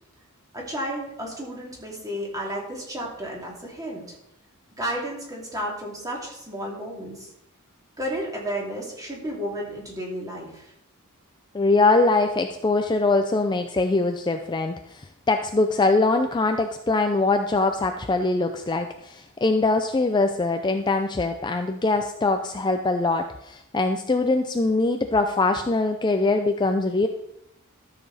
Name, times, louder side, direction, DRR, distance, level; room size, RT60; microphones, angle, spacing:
voice 1, 0.5-4.1 4.8-7.3 8.0-10.7, equal, 15° right, -2 dB, 2.7 m, -32 dB
voice 2, 11.5-27.1, left 3 dB, 20° left, 6 dB, 0.5 m, -22 dB
13.0 x 6.9 x 4.1 m, 0.82 s
head